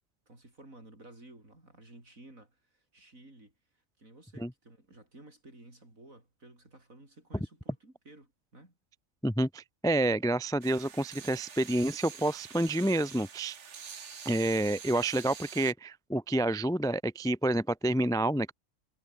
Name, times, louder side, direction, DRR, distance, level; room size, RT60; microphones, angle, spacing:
voice 1, 0.3-3.5 4.0-8.7, right 2 dB, 85° right, 7.6 m, -54 dB
voice 2, 9.2-13.6 14.3-18.5, right 1 dB, 5° left, 0.3 m, -28 dB
sound 1, 10.6-15.7, right 6 dB, 60° right, 1.7 m, -46 dB
omnidirectional pair, 1.4 m